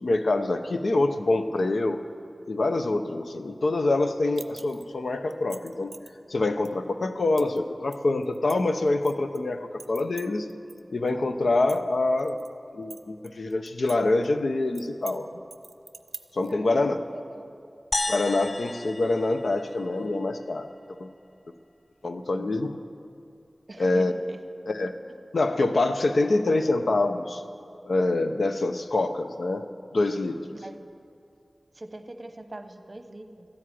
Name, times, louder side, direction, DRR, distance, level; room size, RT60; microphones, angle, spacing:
voice 1, 0.0-2.0 2.5-5.9 6.3-10.5 10.9-12.4 12.7-15.4 16.3-17.0 18.1-21.1 22.0-22.8 23.8-24.1 24.7-24.9 25.3-27.4 27.9-29.7 29.9-30.4, left 2 dB, 80° left, 8 dB, 0.7 m, -25 dB
sound 1, 4.4-4.9 5.3-6.1 6.6-6.7 7.4-7.6 7.9-9.4 9.8-10.8 11.1-11.2 11.5-12.5 12.9-14.0 14.2-14.3 14.7-15.2 15.5-16.5, right 4 dB, 90° right, 0.5 m, -44 dB
voice 2, 16.5-17.5 22.3-22.9 23.7-24.4 30.5-30.8 31.7-33.5, right 1 dB, 45° right, 8 dB, 0.9 m, -43 dB
sound 2, 17.9-20.4, left 2 dB, 50° left, 0.4 m, -33 dB
13.5 x 7.7 x 9.9 m, 2.5 s
wide cardioid pair, 50°, 0 cm